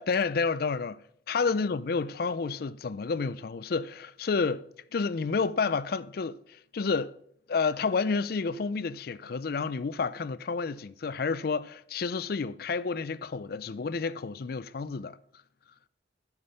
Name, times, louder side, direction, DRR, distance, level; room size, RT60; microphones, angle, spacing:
voice 1, 0.0-4.7 4.9-7.1 7.5-15.2, left 4 dB, 55° left, 0.4 m, -30 dB
11.0 x 5.9 x 5.4 m
head